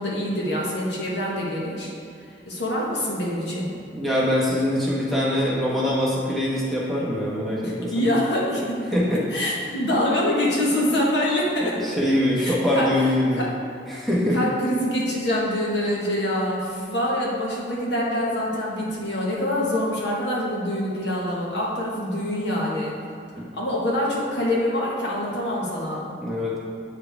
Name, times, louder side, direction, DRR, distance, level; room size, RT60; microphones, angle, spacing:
voice 1, 0.0-1.9 2.5-3.7 7.6-8.8 9.3-11.9 12.4-12.9 13.4-13.5 14.3-22.9 23.5-26.0, left 1 dB, 70° left, -4 dB, 1.5 m, -25 dB
voice 2, 3.9-8.0 8.9-9.2 11.8-13.4 13.9-14.4 23.4-23.5 26.2-26.6, left 1 dB, ahead, -7 dB, 1.3 m, -23 dB
8.4 x 4.8 x 3.5 m, 2.5 s
head